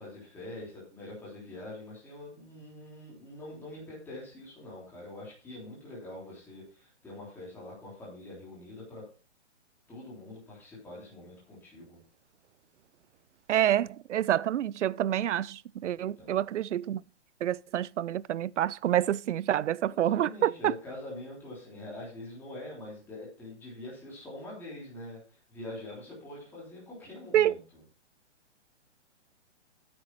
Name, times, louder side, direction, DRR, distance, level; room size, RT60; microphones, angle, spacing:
voice 1, 0.0-9.1 9.9-12.0 15.9-16.4 19.7-27.6, left 1 dB, 5° left, 3.3 m, -44 dB
voice 2, 13.5-17.0 17.4-20.7 27.3-27.5, right 11 dB, 85° right, 0.5 m, -27 dB
8.9 x 8.5 x 4.6 m
hypercardioid pair, 170°, 35 cm